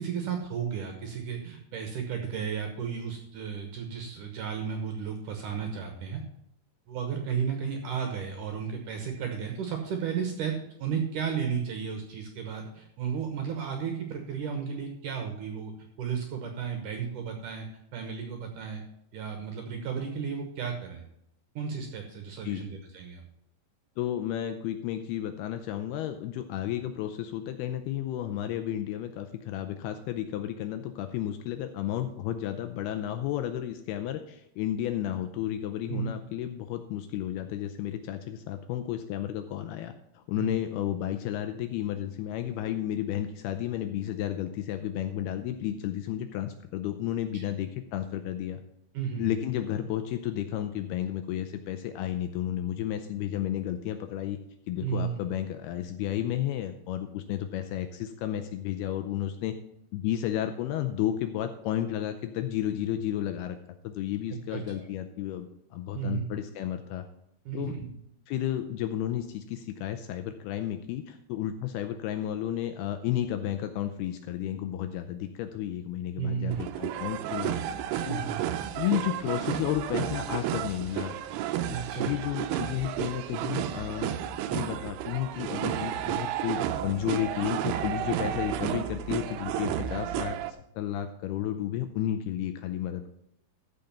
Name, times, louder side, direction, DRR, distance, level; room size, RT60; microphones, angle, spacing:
voice 1, 0.0-6.2 6.9-10.5 10.8-15.7 16.0-17.7 17.9-18.8 19.1-21.0 21.6-23.2 35.9-36.1 40.4-40.6 47.3-47.4 48.9-49.3 54.8-55.2 64.3-64.9 65.9-66.3 67.5-67.9 76.2-76.6 78.1-78.4 81.7-82.1, right 7 dB, 65° right, 4 dB, 2.1 m, -33 dB
voice 2, 24.0-48.6 49.2-54.4 54.7-59.5 59.9-63.6 63.8-67.0 67.5-67.8 68.3-77.6 78.1-78.3 78.7-81.1 82.0-84.1 84.5-93.1, left 11 dB, 85° left, 8 dB, 2.4 m, -32 dB
sound 1, 76.5-90.5, right 11 dB, 85° right, 2.6 m, -32 dB
14.5 x 5.2 x 5.8 m, 0.77 s
omnidirectional pair, 5.0 m